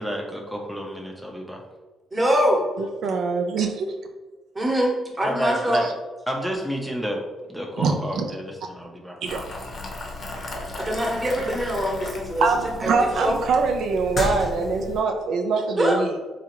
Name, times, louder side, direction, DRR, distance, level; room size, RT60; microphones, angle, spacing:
voice 1, 0.0-1.6 5.2-5.9 6.3-7.2 7.5-9.2, equal, ahead, 0 dB, 0.5 m, -30 dB
voice 2, 2.1-2.6 4.5-4.9 5.2-5.8 10.8-12.5 12.8-13.4 15.8-16.0, equal, 20° right, -1 dB, 0.9 m, -23 dB
voice 3, 2.8-3.9 5.8-5.9 7.8-8.3 9.2-9.4 12.4-16.1, right 4 dB, 75° right, 4 dB, 0.3 m, -24 dB
Boiling, 9.3-15.0, left 2 dB, 50° left, 0.7 m, -34 dB
3.9 x 2.4 x 2.9 m, 1.2 s
cardioid pair, 90°, 0 cm